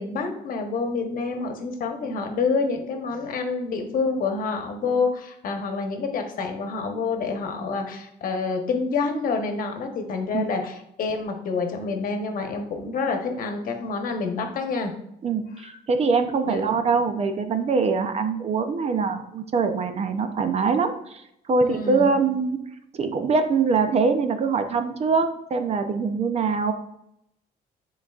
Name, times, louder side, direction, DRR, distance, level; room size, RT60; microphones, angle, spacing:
voice 1, 0.0-14.9 15.6-15.7 16.4-16.6 21.6-22.1, left 4 dB, 55° left, 4 dB, 1.1 m, -27 dB
voice 2, 15.2-22.6 22.9-26.7, right 4 dB, 40° right, 8 dB, 0.6 m, -23 dB
10.0 x 3.9 x 2.4 m, 0.77 s
cardioid pair, 110°, 17 cm